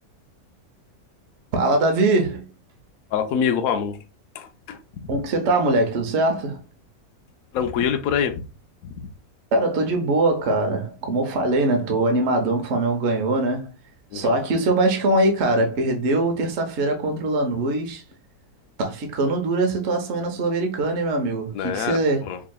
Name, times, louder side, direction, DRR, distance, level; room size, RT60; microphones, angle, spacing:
voice 1, 1.5-2.4 5.1-6.6 9.5-13.7 14.1-18.0 18.8-22.2, right 2 dB, 55° right, 0.9 m, -22 dB
voice 2, 3.1-4.0 4.3-4.8 7.5-8.5 8.9-9.1 14.1-14.3 21.5-22.4, left 7 dB, 70° left, 0.9 m, -25 dB
4.8 x 2.8 x 2.3 m
omnidirectional pair, 1.6 m